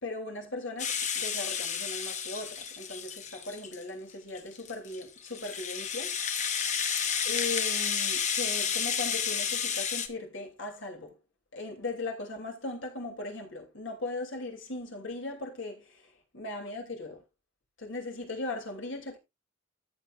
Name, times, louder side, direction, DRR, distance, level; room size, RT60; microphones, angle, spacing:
voice 1, 0.0-6.6 7.2-11.2 11.5-17.2 17.8-19.2, left 2 dB, 60° left, 2.9 m, -38 dB
Rattle (instrument), 0.8-3.8 4.4-10.1, left 7 dB, 35° left, 1.0 m, -31 dB
14.0 x 6.7 x 2.5 m
head